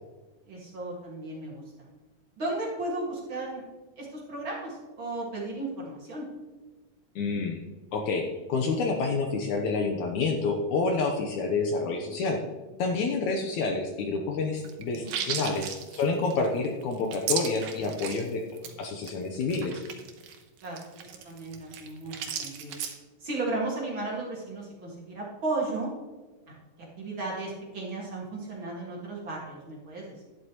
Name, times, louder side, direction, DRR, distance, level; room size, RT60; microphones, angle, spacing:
voice 1, 0.5-1.9 2.4-3.6 4.0-6.3 13.1-13.2 15.2-15.4 20.6-20.8 21.2-22.8 23.2-25.9 27.0-30.2, right 2 dB, 40° right, -4 dB, 2.2 m, -35 dB
voice 2, 7.2-7.6 7.9-12.4 12.8-18.4 18.8-19.8, left 4 dB, 70° left, 3 dB, 2.0 m, -28 dB
sound 1, 14.6-18.3 18.6-18.7 19.0-19.1 19.4-22.9, right 8 dB, 75° right, 2.6 m, -35 dB
11.5 x 11.0 x 3.0 m, 1.3 s
omnidirectional pair, 4.0 m